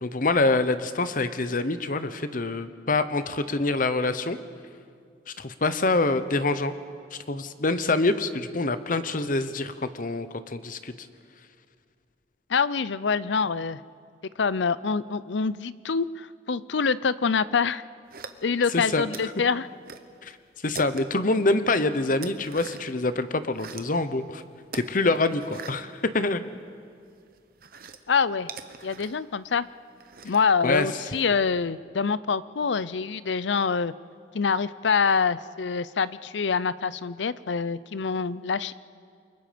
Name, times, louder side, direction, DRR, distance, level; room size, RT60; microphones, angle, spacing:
voice 1, 0.0-4.4 5.3-6.7 7.1-10.9 18.7-19.1 20.2-20.3 20.6-24.4 24.7-26.4 30.6-30.9, left 2 dB, 50° left, 12 dB, 0.9 m, -25 dB
voice 2, 12.5-13.8 14.4-17.8 18.4-19.7 28.1-28.5 28.8-29.7 30.2-33.9 34.3-38.7, left 5 dB, 80° left, 17 dB, 0.6 m, -25 dB
sound 1, 18.1-18.7 19.1-20.1 20.4-21.3 21.7-23.0 23.4-24.0 24.7-26.7 27.0-30.5, right 5 dB, 55° right, 1.1 m, -43 dB
28.5 x 24.0 x 5.2 m, 2.2 s
head